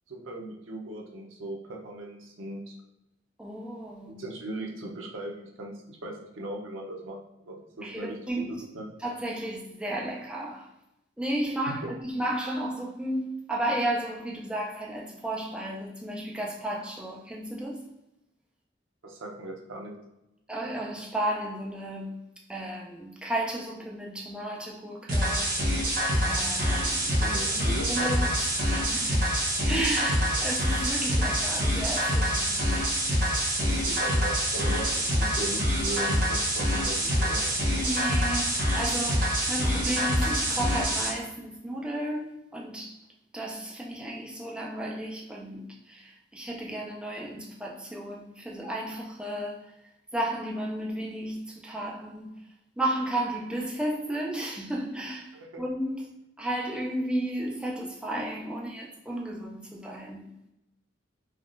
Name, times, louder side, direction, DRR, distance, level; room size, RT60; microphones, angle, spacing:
voice 1, 0.1-2.8 4.1-7.2 7.4-8.2 8.5-8.9 11.8-11.9 19.0-19.9 27.1-28.1 33.6-37.5 55.3-55.6, right 1 dB, 85° right, 0.7 m, -38 dB
voice 2, 3.4-4.2 7.8-8.5 9.0-10.7 11.2-17.9 20.5-22.1 22.5-25.9 26.3-29.2 29.7-32.6 37.4-43.0 43.3-49.7 50.1-52.3 52.8-56.1 56.4-60.3, right 1 dB, 5° right, 0.4 m, -33 dB
sound 1, 25.1-41.1, equal, 45° right, 0.9 m, -26 dB
3.5 x 2.3 x 2.5 m
head